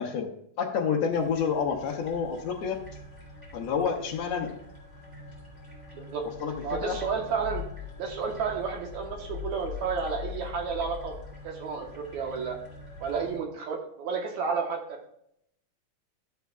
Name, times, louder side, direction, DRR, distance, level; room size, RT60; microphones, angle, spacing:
voice 1, 0.0-2.8 3.5-4.5 6.2-7.0, left 6 dB, 65° left, -1 dB, 1.9 m, -29 dB
sound 1, 1.1-13.4, left 5 dB, 10° right, 2.5 m, -43 dB
voice 2, 6.6-7.6 8.0-11.1 11.4-12.6 13.0-15.0, right 5 dB, 75° right, 1 dB, 2.4 m, -31 dB
12.5 x 7.8 x 2.3 m, 0.73 s
omnidirectional pair, 3.4 m